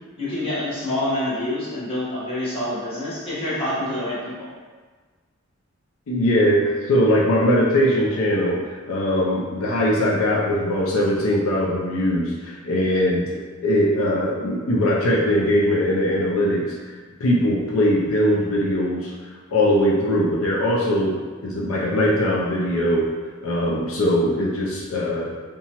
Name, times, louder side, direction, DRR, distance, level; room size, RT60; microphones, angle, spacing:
voice 1, 0.2-4.5, left 1 dB, 25° left, -10 dB, 1.0 m, -27 dB
voice 2, 6.1-16.9 17.2-19.1 19.5-23.1 23.4-25.3, equal, 80° left, -4 dB, 0.4 m, -21 dB
2.9 x 2.2 x 2.8 m, 1.4 s
head